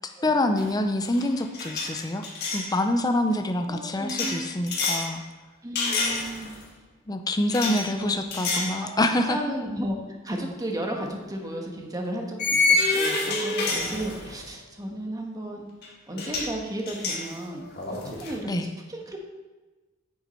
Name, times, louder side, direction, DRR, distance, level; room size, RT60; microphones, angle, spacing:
voice 1, 0.2-2.3 2.5-5.2 7.1-9.4 18.5-18.7, left 1 dB, 20° left, 6 dB, 0.5 m, -26 dB
sound 1, 0.6-0.8 1.1-2.7 4.1-5.1 5.8-6.6 7.5-7.8 8.3-8.8 9.2-9.4 10.9-11.0 12.4-14.5 15.8-15.9 16.2-16.5 16.9-18.3, left 3 dB, 55° left, 2.0 m, -27 dB
voice 2, 3.7-4.6 5.6-6.5 7.6-10.0 10.2-15.7 16.1-17.6 17.9-19.2, right 1 dB, 20° right, 1 dB, 1.3 m, -34 dB
9.3 x 7.1 x 4.4 m, 1.2 s
head